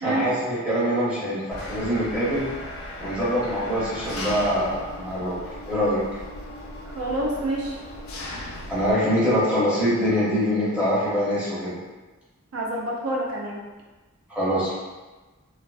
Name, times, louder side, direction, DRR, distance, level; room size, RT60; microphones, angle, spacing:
voice 1, 0.0-2.5 3.0-5.4 5.7-6.0 8.7-11.7 14.3-14.7, equal, 5° right, -10 dB, 0.6 m, -24 dB
Engine, 1.5-8.9, left 1 dB, 70° left, 0.4 m, -37 dB
voice 2, 6.9-7.8 12.5-13.6, right 1 dB, 75° right, -2 dB, 0.5 m, -27 dB
2.4 x 2.3 x 2.3 m, 1.2 s
head